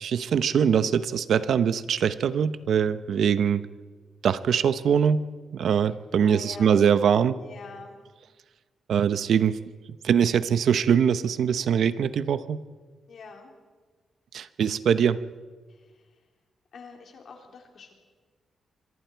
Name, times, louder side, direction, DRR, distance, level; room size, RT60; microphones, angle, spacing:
voice 1, 0.0-3.7 4.2-5.2 5.5-7.4 8.9-9.6 10.0-12.6 14.3-15.2, right 7 dB, 60° right, 14 dB, 0.7 m, -22 dB
voice 2, 6.2-6.8 7.4-8.0 13.1-13.5 15.7-16.3 16.7-17.9, left 4 dB, 55° left, 2 dB, 3.6 m, -45 dB
26.5 x 23.5 x 4.6 m, 1.4 s
wide cardioid pair, 175°, 0 cm